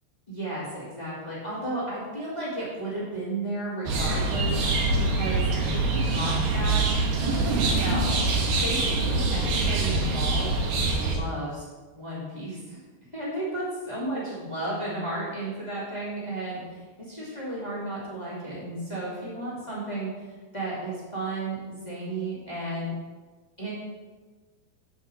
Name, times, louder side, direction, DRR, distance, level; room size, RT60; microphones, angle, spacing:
voice 1, 0.3-6.8 7.2-8.8 9.0-11.6 11.9-12.8 13.1-22.9 23.6-23.7, right 2 dB, 15° left, -8 dB, 1.6 m, -34 dB
sound 1, 3.9-11.2, right 3 dB, 65° right, 2.4 m, -24 dB
7.8 x 7.8 x 4.1 m, 1.4 s
omnidirectional pair, 5.0 m